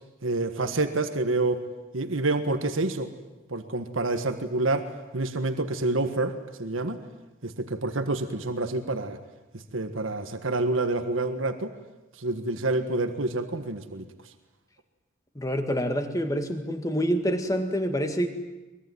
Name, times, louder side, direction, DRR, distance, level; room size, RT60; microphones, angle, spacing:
voice 1, 0.2-1.6 1.9-3.1 3.5-4.9 5.1-7.0 7.4-9.2 9.5-11.7 12.2-14.1, right 2 dB, 85° right, 8 dB, 1.6 m, -28 dB
voice 2, 15.4-18.3, equal, 15° left, 6 dB, 1.9 m, -27 dB
23.0 x 22.0 x 9.4 m, 1.1 s
head